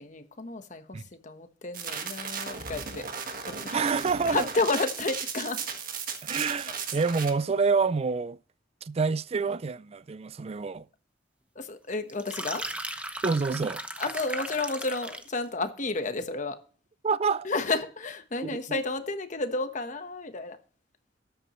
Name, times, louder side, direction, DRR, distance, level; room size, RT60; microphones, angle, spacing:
voice 1, 0.0-3.1 3.5-3.9 4.3-5.6 6.7-6.8 11.5-12.7 14.0-16.6 17.4-20.6, left 3 dB, 45° left, 1.1 m, -31 dB
sound 1, 1.7-7.3, right 6 dB, 50° right, 1.6 m, -36 dB
voice 2, 3.7-4.4 6.2-8.4 8.8-10.9 13.2-13.8 17.0-17.5 18.4-18.8, right 4 dB, 35° right, 0.4 m, -27 dB
sound 2, 12.1-15.4, right 1 dB, 5° right, 0.8 m, -36 dB
13.0 x 10.0 x 3.1 m
head